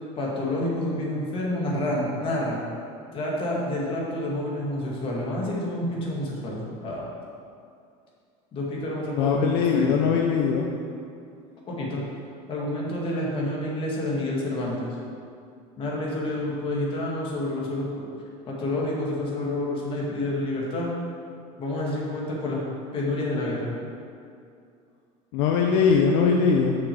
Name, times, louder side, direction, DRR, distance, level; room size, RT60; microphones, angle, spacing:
voice 1, 0.2-2.6 3.1-7.1 8.5-10.0 11.7-12.0 12.5-14.9 15.8-18.0 18.5-20.9 21.6-22.6 22.9-23.7, left 1 dB, 30° left, -4 dB, 2.0 m, -28 dB
voice 2, 9.2-10.7 25.3-26.8, left 6 dB, 75° left, 0 dB, 0.8 m, -21 dB
6.8 x 6.1 x 7.1 m, 2.4 s
cardioid pair, 165°, 17 cm